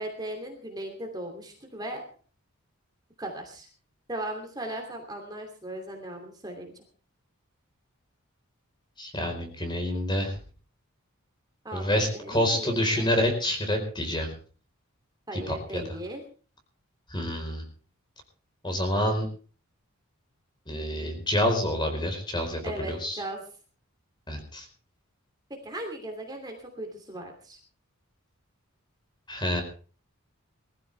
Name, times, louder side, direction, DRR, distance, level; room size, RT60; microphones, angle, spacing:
voice 1, 0.0-2.0 3.2-3.7 4.1-6.7 11.6-13.0 15.3-16.2 22.6-23.4 25.6-27.6, right 1 dB, 20° right, 3 dB, 2.8 m, -37 dB
voice 2, 9.0-10.4 11.7-14.3 15.3-15.8 17.1-17.6 18.6-19.3 20.7-23.2 24.3-24.7 29.3-29.6, left 1 dB, 20° left, 5 dB, 4.4 m, -28 dB
21.5 x 15.0 x 3.4 m, 0.39 s
head